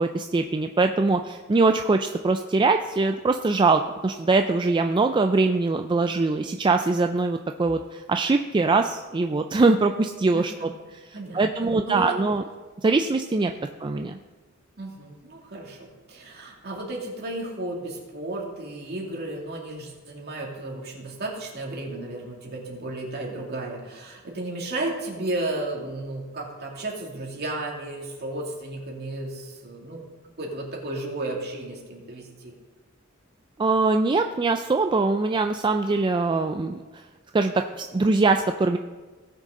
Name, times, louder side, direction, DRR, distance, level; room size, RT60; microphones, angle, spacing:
voice 1, 0.0-11.0 11.3-12.4 12.8-13.5 13.8-14.2 33.6-36.8 37.3-38.8, right 3 dB, 25° right, 6 dB, 0.3 m, -22 dB
voice 2, 10.3-10.8 11.1-12.2 13.5-13.6 14.8-30.0 30.4-32.5, right 2 dB, 50° right, -2 dB, 2.5 m, -33 dB
18.0 x 6.4 x 3.8 m, 1.3 s
head